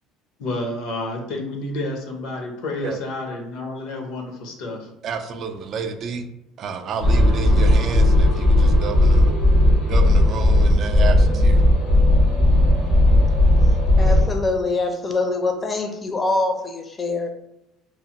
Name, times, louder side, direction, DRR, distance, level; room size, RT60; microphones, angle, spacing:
voice 1, 0.4-4.9, left 2 dB, 75° left, 2 dB, 0.7 m, -30 dB
voice 2, 5.0-6.3 6.6-9.3 9.9-11.6, right 5 dB, 50° right, 6 dB, 0.3 m, -30 dB
sound 1, 7.0-14.3, left 1 dB, 90° left, 1.0 m, -16 dB
voice 3, 14.0-17.3, left 2 dB, 25° left, 4 dB, 0.5 m, -24 dB
3.1 x 2.0 x 2.8 m, 0.87 s
supercardioid pair, 105°, 0 cm